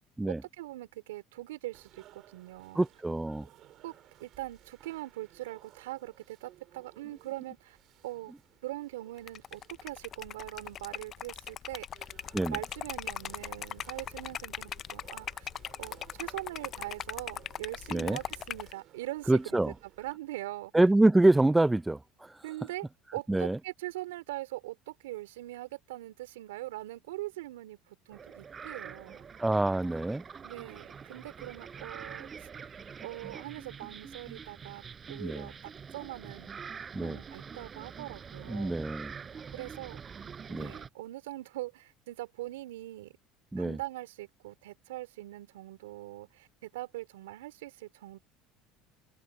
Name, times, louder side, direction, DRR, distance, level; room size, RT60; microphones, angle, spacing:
voice 1, 0.3-2.9 3.8-7.8 8.0-8.3 8.6-11.9 12.4-15.5 15.8-20.7 22.4-22.9 23.1-29.3 30.4-32.5 33.0-36.5 37.0-38.8 39.5-40.0 40.3-43.2 43.6-48.2, right 17 dB, 85° right, 3.9 m, -42 dB
sound 1, 1.7-20.1, right 13 dB, 55° right, 5.2 m, -59 dB
voice 2, 2.8-3.5 12.3-12.6 17.9-18.2 19.3-19.7 20.7-22.4 23.3-23.6 29.4-30.2 35.2-35.5 36.9-37.2 38.5-39.1 40.5-40.7 43.5-43.8, right 2 dB, 10° right, 0.4 m, -26 dB
Liquid, 9.2-18.7, left 9 dB, 45° left, 0.5 m, -40 dB
sound 2, 28.1-40.9, right 6 dB, 35° right, 4.7 m, -45 dB
hypercardioid pair, 85°, 0 cm